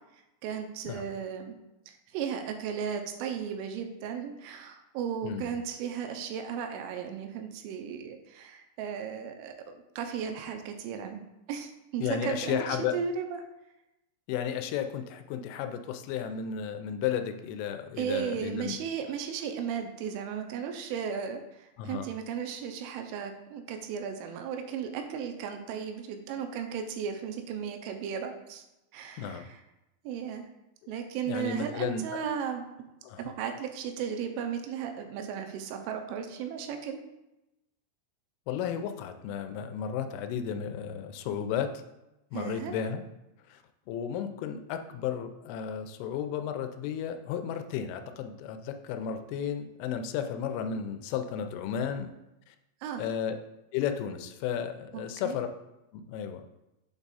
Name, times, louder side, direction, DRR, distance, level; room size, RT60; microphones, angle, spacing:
voice 1, 0.4-1.5 1.9-13.4 18.0-28.6 28.9-29.6 30.0-30.5 30.9-32.6 33.2-37.0 42.3-42.7 52.8-53.0 54.9-55.4, right 7 dB, 85° right, 5 dB, 3.1 m, -35 dB
voice 2, 5.2-5.6 12.0-13.0 14.3-18.8 21.8-22.1 29.2-29.5 31.3-32.0 33.0-33.2 38.5-41.7 42.3-43.0 43.5-43.6 43.9-52.1 52.5-52.6 53.0-53.4 53.7-55.5 55.9-56.4, left 8 dB, 85° left, 8 dB, 3.0 m, -33 dB
7.9 x 3.5 x 4.1 m, 0.92 s
omnidirectional pair, 5.5 m